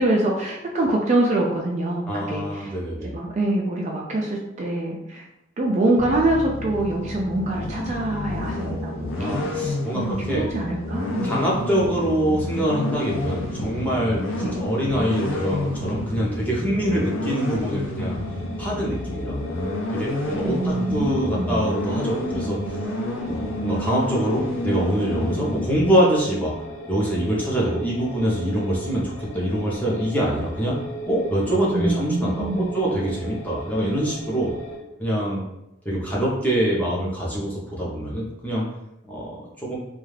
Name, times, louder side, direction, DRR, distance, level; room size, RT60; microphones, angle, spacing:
voice 1, 0.0-2.7 3.0-5.2 5.6-9.4 9.9-11.6 14.4-14.6 20.4-21.6 31.7-32.7, right 2 dB, 35° right, -1 dB, 0.3 m, -25 dB
voice 2, 2.1-3.1 9.2-10.5 11.2-18.2 18.6-19.4 19.9-22.8 23.2-26.5 26.9-30.7 31.1-34.5 35.0-35.4 35.8-38.6 39.1-39.8, equal, 10° left, -6 dB, 0.6 m, -24 dB
sound 1, 6.0-25.8, left 1 dB, 90° left, 0.6 m, -29 dB
sound 2, 18.1-34.8, right 1 dB, 35° left, 0.9 m, -38 dB
2.4 x 2.3 x 3.2 m, 0.87 s
head